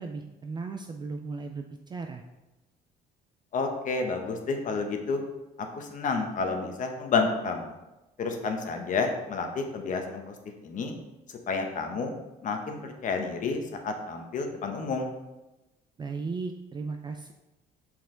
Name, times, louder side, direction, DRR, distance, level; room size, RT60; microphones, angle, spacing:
voice 1, 0.0-2.2 16.0-17.3, right 4 dB, 25° right, 5 dB, 0.4 m, -36 dB
voice 2, 3.5-5.2 5.6-7.8 8.2-10.3 10.6-10.9 11.5-12.1 12.4-15.1, left 4 dB, 50° left, 4 dB, 1.0 m, -30 dB
5.8 x 4.5 x 3.8 m, 1.0 s
cardioid pair, 110°, 17 cm